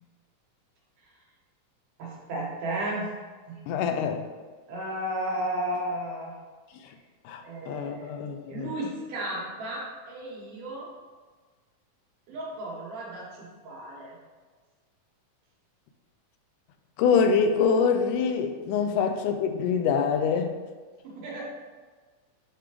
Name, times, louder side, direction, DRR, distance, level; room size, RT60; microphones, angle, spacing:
voice 1, 2.0-3.1 3.5-3.6 4.7-6.4 7.4-8.1 8.5-10.9 12.3-14.2 21.0-21.4, right 1 dB, 90° right, -5 dB, 3.2 m, -34 dB
voice 2, 3.7-4.2 6.8-6.9 7.3-8.7 17.0-20.6, left 6 dB, 90° left, 7 dB, 2.1 m, -25 dB
8.7 x 3.6 x 3.4 m, 1.4 s
omnidirectional pair, 3.6 m